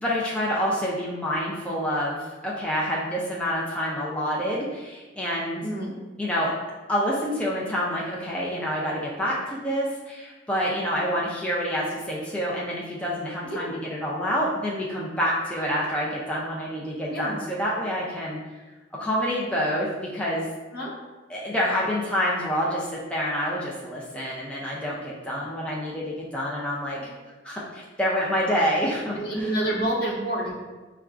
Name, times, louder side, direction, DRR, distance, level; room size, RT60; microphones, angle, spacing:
voice 1, 0.0-5.6 6.2-6.5 6.9-18.4 19.0-19.9 20.1-20.5 21.3-27.1 27.4-29.6, equal, 5° left, -5 dB, 0.4 m, -27 dB
voice 2, 5.6-5.9 13.4-13.7 17.1-17.4 20.7-20.9 29.2-30.5, right 1 dB, 60° left, -4 dB, 0.9 m, -28 dB
5.6 x 2.3 x 2.4 m, 1.2 s
head